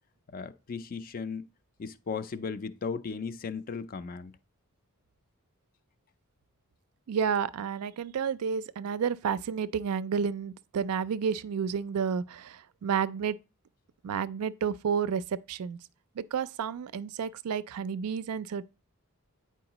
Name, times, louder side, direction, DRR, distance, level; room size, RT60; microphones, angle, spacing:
voice 1, 0.3-1.5 1.8-4.3, left 5 dB, 40° left, 0.4 m, -36 dB
voice 2, 7.1-13.4 14.0-15.8 16.2-18.6, right 7 dB, 75° right, 0.4 m, -31 dB
8.6 x 4.6 x 2.9 m
head